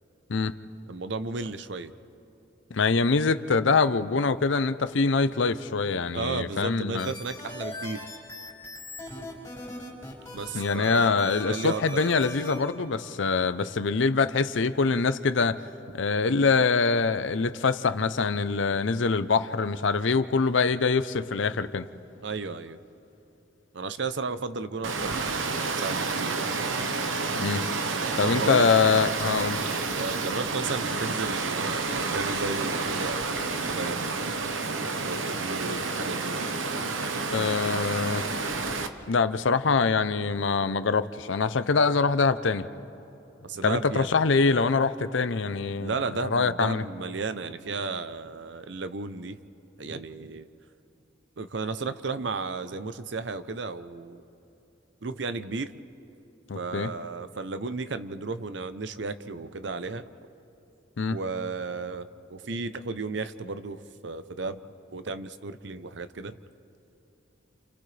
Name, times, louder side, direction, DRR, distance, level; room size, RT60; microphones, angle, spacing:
voice 1, 0.9-1.9 6.1-8.1 10.3-12.2 22.2-22.8 23.7-26.5 28.2-28.7 29.9-34.1 35.0-36.4 43.4-44.1 45.8-49.4 49.8-50.5 51.4-54.2 55.0-55.7 56.5-60.1 61.1-64.6 64.9-66.4, right 3 dB, 65° right, 11 dB, 0.7 m, -34 dB
voice 2, 2.7-7.1 10.5-15.6 15.9-21.9 27.4-27.6 28.2-29.6 37.3-38.3 39.1-42.7 43.6-45.9 46.2-46.8 56.5-56.9 61.0-61.2, left 4 dB, 75° left, 12 dB, 0.6 m, -24 dB
sound 1, 7.0-12.6, left 2 dB, 15° left, 5.0 m, -40 dB
Water, 24.8-38.9, right 3 dB, 85° right, 1.0 m, -29 dB
30.0 x 29.0 x 3.4 m, 3.0 s
head